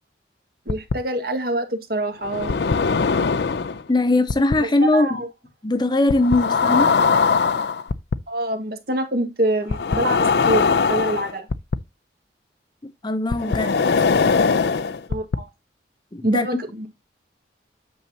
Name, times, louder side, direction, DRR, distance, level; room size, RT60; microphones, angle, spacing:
sound 1, 0.7-0.9 2.2-3.8 4.3-4.6 6.1-8.2 9.7-11.8 13.3-15.4, left 5 dB, 65° left, 0.5 m, -20 dB
voice 1, 0.7-2.5 4.6-5.3 8.3-11.5 15.1-15.5 16.2-16.9, right 1 dB, 55° right, 1.8 m, -25 dB
voice 2, 3.9-5.2 5.6-6.9 13.0-13.8 16.1-16.5, left 2 dB, 25° left, 0.6 m, -20 dB
8.7 x 6.8 x 2.8 m
head